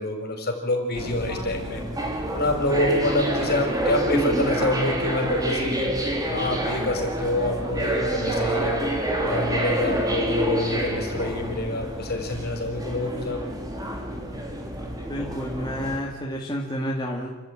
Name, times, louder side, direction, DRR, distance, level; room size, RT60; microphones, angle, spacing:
voice 1, 0.0-1.8 2.3-5.9 6.3-8.8 9.2-13.4, left 1 dB, 45° left, 2 dB, 5.3 m, -27 dB
sound 1, 0.9-16.0, right 1 dB, 15° right, 3.5 m, -27 dB
voice 2, 15.1-17.3, equal, 20° left, -3 dB, 2.6 m, -30 dB
30.0 x 13.0 x 9.3 m, 1.2 s
head